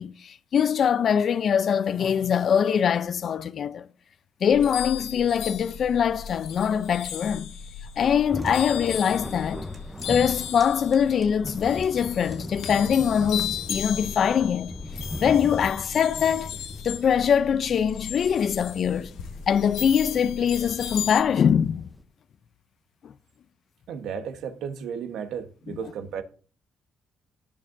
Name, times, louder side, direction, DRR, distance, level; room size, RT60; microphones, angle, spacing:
voice 1, 0.0-3.9 4.4-7.5 8.0-9.7 10.1-14.7 15.2-16.5 16.8-19.1 19.5-21.9 23.0-23.1 25.7-25.8, left 8 dB, 60° left, 0.5 m, -23 dB
sound 1, 4.5-21.2, left 9 dB, 85° left, 1.2 m, -36 dB
Thunder, 8.2-22.0, left 1 dB, 5° left, 0.8 m, -40 dB
sound 2, 8.4-8.6 9.1-9.2 9.7-12.0 12.3-12.8 13.5-13.9, right 3 dB, 35° right, 4.7 m, -50 dB
voice 2, 23.9-26.2, right 7 dB, 80° right, 1.2 m, -34 dB
18.5 x 6.6 x 2.7 m
cardioid pair, 90°, 0 cm